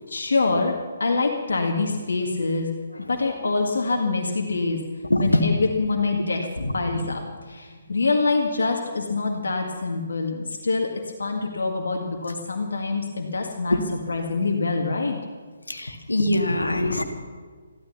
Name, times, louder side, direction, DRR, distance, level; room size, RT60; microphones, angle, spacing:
voice 1, 0.1-2.7 3.1-4.8 5.2-6.5 6.7-7.2 7.5-10.9 11.2-13.8 14.1-15.2, left 3 dB, 70° left, 2 dB, 1.8 m, -25 dB
voice 2, 5.1-5.4 6.6-7.0 13.7-13.9 15.7-17.0, left 1 dB, 85° left, 6 dB, 1.8 m, -23 dB
15.0 x 12.5 x 7.0 m, 1.5 s
figure-of-eight pair, 140°, 0 cm